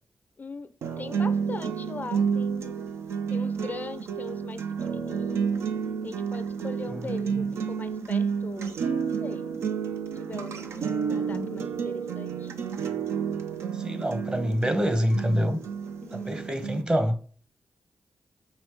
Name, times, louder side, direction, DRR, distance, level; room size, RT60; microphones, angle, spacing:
voice 1, 0.4-0.7 1.0-2.8 3.3-5.5 6.0-8.8 9.2-9.5 10.1-10.8 11.1-12.5 16.0-16.4, left 3 dB, 40° left, 0.4 m, -40 dB
sound 1, 0.8-16.8, right 6 dB, 90° right, 0.5 m, -30 dB
voice 2, 6.9-7.5 11.2-11.5 13.7-15.6 16.1-17.2, equal, 20° right, 0.8 m, -27 dB
5.0 x 3.1 x 3.4 m
cardioid pair, 60°, 4 cm